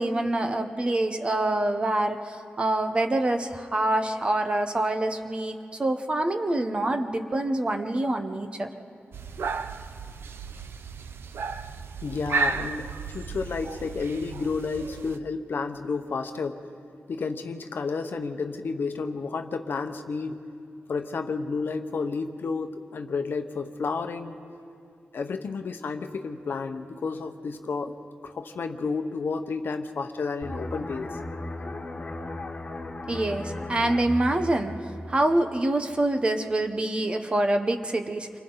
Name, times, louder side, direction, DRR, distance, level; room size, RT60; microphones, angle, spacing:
voice 1, 0.0-8.7 33.1-38.4, right 1 dB, 25° right, 6 dB, 0.9 m, -26 dB
sound 1, 9.1-15.2, right 4 dB, 80° right, 0.7 m, -33 dB
voice 2, 12.0-16.6 17.1-20.4 20.9-24.4 25.1-28.0 28.2-31.2, left 4 dB, 65° left, 6 dB, 1.0 m, -31 dB
sound 2, 30.4-35.8 36.1-36.4, left 2 dB, 30° left, 1.8 m, -36 dB
28.5 x 24.5 x 4.0 m, 2.4 s
wide cardioid pair, 170°, 4 cm